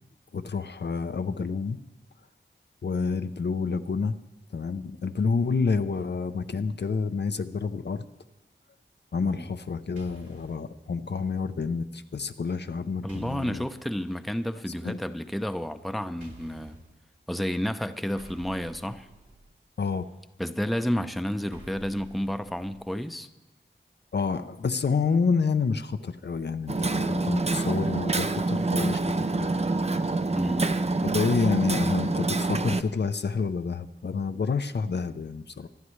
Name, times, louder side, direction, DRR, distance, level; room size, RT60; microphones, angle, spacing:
voice 1, 0.3-1.8 2.8-4.2 4.5-8.0 9.1-13.6 14.8-15.0 19.8-20.0 24.1-29.5 31.0-35.7, left 5 dB, 60° left, 9 dB, 0.6 m, -28 dB
sound 1, 10.0-10.7 13.1-13.8 16.2-16.9 18.2-19.6 21.5-22.9, right 2 dB, 70° right, 3.1 m, -49 dB
voice 2, 13.0-16.8 17.3-19.1 20.4-23.3 30.3-30.7, equal, ahead, 9 dB, 0.7 m, -31 dB
Hammer, 26.7-32.8, right 3 dB, 35° right, 0.6 m, -26 dB
24.0 x 11.0 x 3.2 m, 1.0 s
wide cardioid pair, 55°, 20 cm